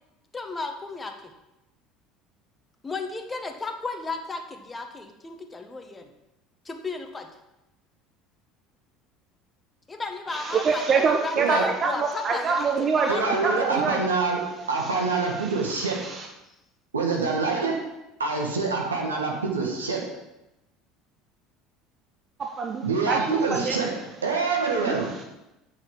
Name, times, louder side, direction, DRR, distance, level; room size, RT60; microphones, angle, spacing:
voice 1, 0.3-1.1 2.8-6.1 6.6-7.3 9.9-13.9, left 3 dB, 20° left, 5 dB, 1.5 m, -34 dB
voice 2, 10.3-14.0 14.8-15.1 15.4-16.3 22.4-23.8 24.8-25.2, right 5 dB, 40° right, 3 dB, 1.0 m, -26 dB
voice 3, 13.1-16.0 16.9-17.8 18.2-20.1 22.8-25.1, right 4 dB, 85° right, 0 dB, 1.6 m, -26 dB
8.2 x 6.7 x 7.3 m, 0.94 s
hypercardioid pair, 65°, 0 cm